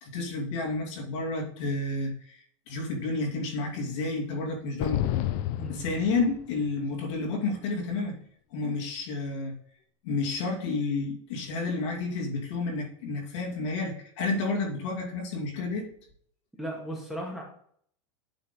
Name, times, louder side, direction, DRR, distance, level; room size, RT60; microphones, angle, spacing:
voice 1, 0.0-2.4 2.7-5.0 5.7-8.2 8.5-9.5 10.0-15.9, left 3 dB, 65° left, 0 dB, 2.6 m, -30 dB
sound 1, 4.8-6.7, left 13 dB, 50° left, 0.6 m, -30 dB
voice 2, 5.6-5.9 16.6-17.4, right 1 dB, ahead, -2 dB, 1.8 m, -36 dB
9.9 x 3.7 x 3.7 m, 0.62 s
supercardioid pair, 130°, 16 cm